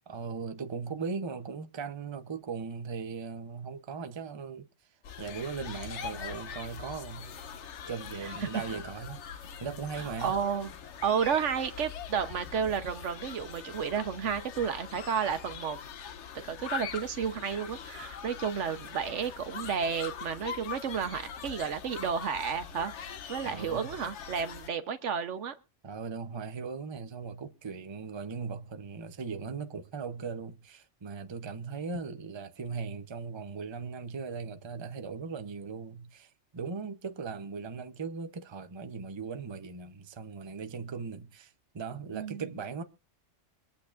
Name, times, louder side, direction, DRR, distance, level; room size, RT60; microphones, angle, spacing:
voice 1, 0.1-4.7 5.2-7.3 7.9-9.2 9.6-10.3 23.4-23.9 25.8-42.8, right 5 dB, 25° right, 0.7 m, -38 dB
sound 1, 5.0-24.7, left 7 dB, 70° left, 1.1 m, -42 dB
voice 2, 10.0-10.7 11.0-15.8 16.5-25.5 42.1-42.4, right 7 dB, 70° right, 1.2 m, -32 dB
24.5 x 8.4 x 2.5 m
omnidirectional pair, 1.3 m